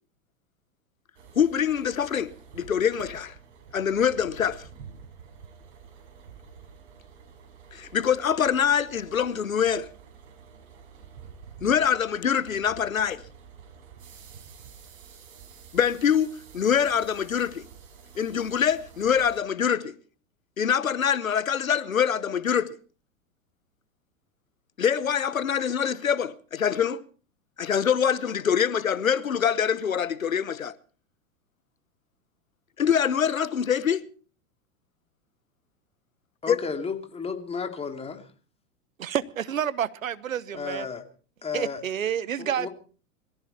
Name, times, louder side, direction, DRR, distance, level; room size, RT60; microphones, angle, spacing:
sound 1, 1.1-19.4, right 7 dB, 60° right, 5.2 m, -49 dB
voice 1, 1.4-3.3 3.7-4.7 7.7-9.9 11.6-13.2 15.7-17.7 18.2-19.9 20.6-22.8 24.8-27.0 27.6-30.7 32.8-34.0 36.5-36.6, left 8 dB, 85° left, 1.0 m, -24 dB
voice 2, 36.4-38.2 40.5-41.0 41.4-41.8 42.4-42.7, left 5 dB, 15° left, 2.6 m, -33 dB
voice 3, 39.0-40.9 41.5-42.7, right 9 dB, 75° right, 1.0 m, -29 dB
22.5 x 14.5 x 4.3 m
figure-of-eight pair, 95°, 40 cm